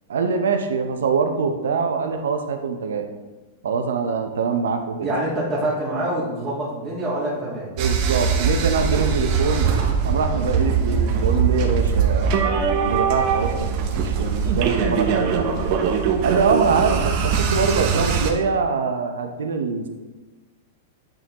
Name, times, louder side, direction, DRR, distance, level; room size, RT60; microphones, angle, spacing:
voice 1, 0.1-3.0 3.6-5.1 7.8-9.7 10.0-15.5 16.2-19.9, right 5 dB, 90° right, 6 dB, 0.7 m, -24 dB
voice 2, 5.0-7.7, right 1 dB, 20° right, -9 dB, 1.6 m, -25 dB
sound 1, 7.8-18.3, right 6 dB, 45° right, 0.8 m, -21 dB
8.9 x 3.8 x 3.0 m, 1.2 s
hypercardioid pair, 145°, 0 cm